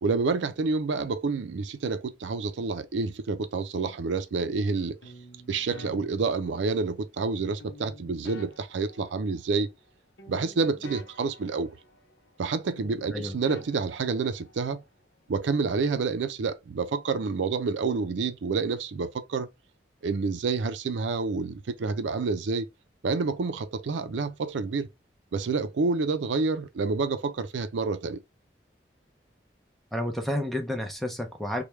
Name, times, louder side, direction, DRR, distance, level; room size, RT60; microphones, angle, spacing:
voice 1, 0.0-5.0 5.5-9.7 10.3-11.8 12.4-14.8 15.3-19.5 20.0-22.7 23.0-24.9 25.3-28.2, right 4 dB, 85° right, 0.4 m, -28 dB
sound 1, 5.0-7.0 7.6-9.9 10.2-12.5 12.8-14.8, equal, 80° left, 0.7 m, -48 dB
voice 2, 29.9-31.6, left 1 dB, ahead, 0.5 m, -30 dB
3.1 x 2.2 x 3.1 m
head